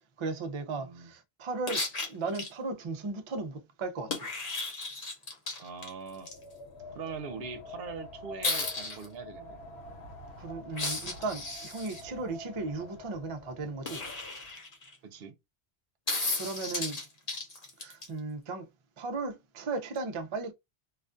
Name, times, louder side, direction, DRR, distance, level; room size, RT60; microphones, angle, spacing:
voice 1, 0.2-4.3 10.4-14.1 16.3-17.0 17.8-18.7 19.0-20.5, right 3 dB, 50° right, 0.3 m, -36 dB
voice 2, 0.7-1.1 5.6-6.3 6.9-9.6 15.0-15.3, right 5 dB, 70° right, 0.8 m, -42 dB
sound 1, 1.7-2.5 4.1-6.3 8.4-9.1 10.7-12.0 13.8-15.0 16.1-18.1 20.0-20.1, left 3 dB, 40° left, 0.8 m, -34 dB
Wind, 6.1-14.5, left 2 dB, 85° left, 1.1 m, -48 dB
2.4 x 2.2 x 2.5 m
omnidirectional pair, 1.1 m